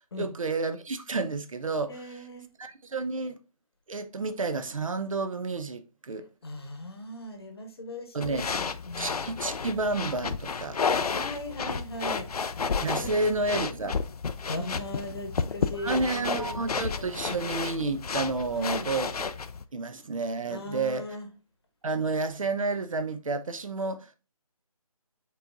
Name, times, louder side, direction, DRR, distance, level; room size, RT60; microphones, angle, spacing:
voice 1, 0.2-2.2 2.6-3.4 3.9-6.3 8.1-8.5 9.0-10.8 12.8-14.0 15.8-19.1 19.7-21.0 21.8-24.2, right 3 dB, 60° right, 0.6 m, -30 dB
voice 2, 1.9-2.5 6.4-9.3 11.1-12.3 12.9-13.1 13.5-13.6 14.5-17.0 18.5-18.9 20.5-21.3, left 1 dB, 40° left, 1.0 m, -38 dB
sound 1, 8.2-19.6, left 5 dB, 80° left, 0.5 m, -32 dB
5.5 x 4.0 x 2.4 m
figure-of-eight pair, 165°, 19 cm